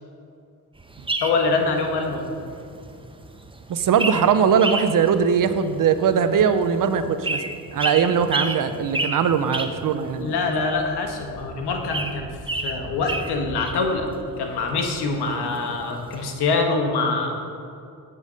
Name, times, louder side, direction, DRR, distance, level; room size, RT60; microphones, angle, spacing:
sound 1, 0.8-16.4, right 2 dB, 15° right, 0.9 m, -33 dB
voice 1, 1.2-2.3 10.2-14.1 14.4-17.3, left 3 dB, 75° left, 3 dB, 1.5 m, -24 dB
voice 2, 3.7-7.4 7.7-10.3, right 7 dB, 55° right, 11 dB, 0.7 m, -20 dB
8.3 x 7.1 x 5.3 m, 2.5 s
supercardioid pair, 60°, 40 cm